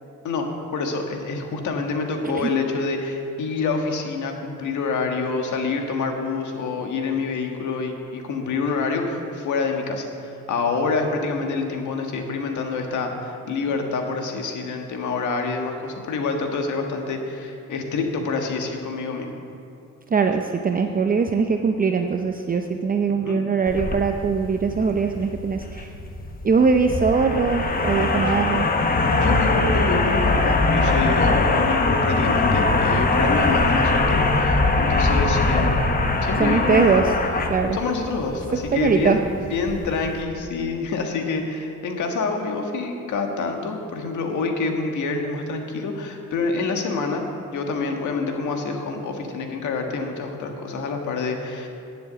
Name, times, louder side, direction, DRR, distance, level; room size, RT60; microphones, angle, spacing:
voice 1, 0.2-19.4 23.2-23.4 28.3-28.6 29.1-37.0 37.7-51.7, left 4 dB, 75° left, 3 dB, 1.6 m, -27 dB
voice 2, 20.1-25.9 26.4-28.7 36.4-37.1 37.5-37.8 38.5-39.2, right 5 dB, 30° right, 5 dB, 0.6 m, -21 dB
sound 1, 23.7-40.2, left 2 dB, 30° left, 1.2 m, -22 dB
10.5 x 7.2 x 7.9 m, 2.7 s
cardioid pair, 90°, 30 cm